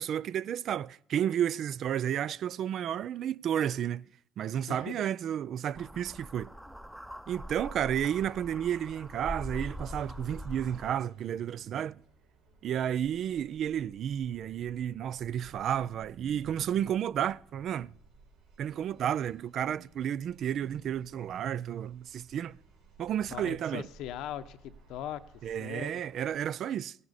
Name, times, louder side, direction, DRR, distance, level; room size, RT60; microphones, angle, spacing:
voice 1, 0.0-4.1 4.4-6.5 7.3-12.0 12.6-17.9 18.6-22.6 23.0-23.8 25.4-27.0, right 10 dB, 60° right, 0.4 m, -32 dB
voice 2, 4.7-5.0 23.3-25.2 25.6-25.9, left 11 dB, 75° left, 0.8 m, -39 dB
sound 1, 5.8-10.9, equal, 5° right, 0.7 m, -43 dB
sound 2, 7.8-26.5, right 3 dB, 90° right, 4.6 m, -59 dB
16.5 x 11.0 x 4.1 m
supercardioid pair, 75°, 0 cm